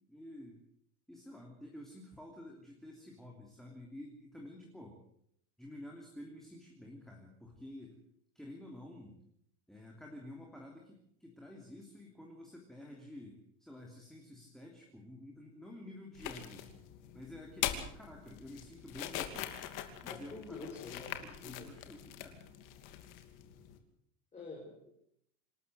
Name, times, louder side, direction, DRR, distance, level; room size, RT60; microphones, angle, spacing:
voice 1, 0.1-0.6 1.1-5.0 5.6-8.0 8.3-9.2 9.7-16.7 17.1-19.7 20.0-22.4, left 1 dB, ahead, 0 dB, 3.0 m, -51 dB
sound 1, 16.1-23.8, left 11 dB, 55° left, 2.8 m, -43 dB
voice 2, 20.1-21.7 24.3-25.0, left 3 dB, 15° left, -1 dB, 4.4 m, -47 dB
27.0 x 13.0 x 7.9 m, 0.71 s
cardioid pair, 155°, 39 cm